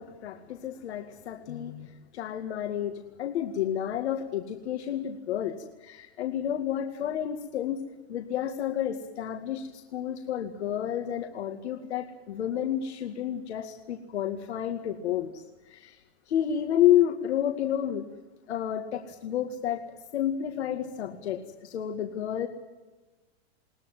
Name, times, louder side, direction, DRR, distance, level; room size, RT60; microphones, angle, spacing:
voice 1, 0.0-5.5 5.8-7.8 8.1-16.0 16.3-18.0 18.5-19.8 20.1-22.5, left 10 dB, 85° left, 4 dB, 2.2 m, -30 dB
21.5 x 18.5 x 9.2 m, 1.2 s
supercardioid pair, 155°, 32 cm